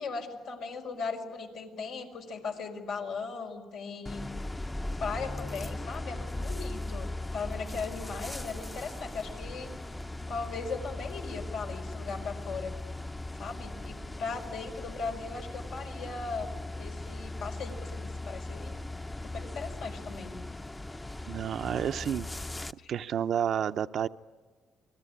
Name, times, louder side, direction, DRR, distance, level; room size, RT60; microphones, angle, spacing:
voice 1, 0.0-4.3 5.0-9.7 10.3-12.7 13.3-16.5 16.8-18.8 19.2-20.4 22.8-22.9, left 4 dB, 85° left, 2 dB, 5.0 m, -38 dB
sound 1, 4.0-22.7, left 2 dB, 15° left, 0.8 m, -38 dB
voice 2, 21.3-22.3 22.9-24.1, right 9 dB, 65° right, 11 dB, 0.7 m, -30 dB
28.5 x 20.0 x 9.9 m, 1.5 s
cardioid pair, 90°, 0 cm